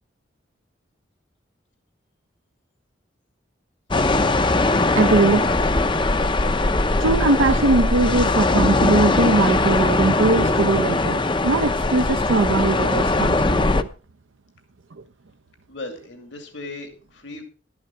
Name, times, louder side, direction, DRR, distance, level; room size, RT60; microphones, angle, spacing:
sound 1, 3.9-13.8, left 2 dB, 25° left, 0.7 m, -20 dB
voice 1, 4.9-5.8 7.0-13.9, right 3 dB, 80° right, 6 dB, 0.7 m, -21 dB
voice 2, 15.7-17.4, left 2 dB, 70° left, 5 dB, 2.5 m, -37 dB
12.0 x 11.0 x 4.6 m, 0.36 s
head